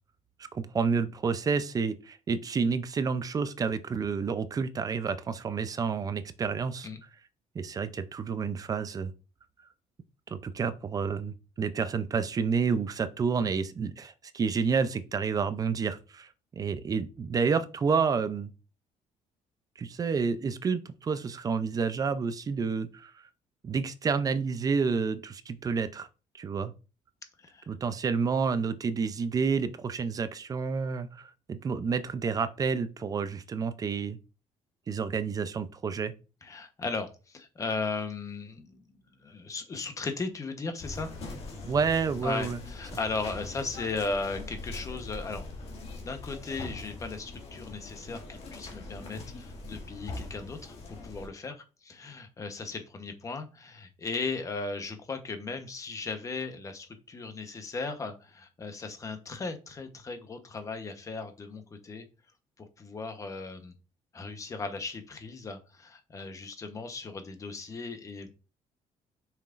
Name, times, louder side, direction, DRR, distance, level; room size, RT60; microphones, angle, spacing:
voice 1, 0.5-6.9 7.5-9.1 10.3-16.3 16.6-18.5 19.8-23.1 23.6-26.1 26.3-26.7 27.7-34.2 34.9-36.1 41.6-42.6, right 5 dB, 30° right, 0.5 m, -29 dB
voice 2, 36.4-41.1 42.2-45.5 46.0-51.5 51.8-62.1 62.6-63.7 64.1-68.3, left 3 dB, 25° left, 1.0 m, -37 dB
sound 1, 40.8-51.3, left 2 dB, 55° left, 2.2 m, -42 dB
7.1 x 5.8 x 2.5 m
cardioid pair, 155°, 13 cm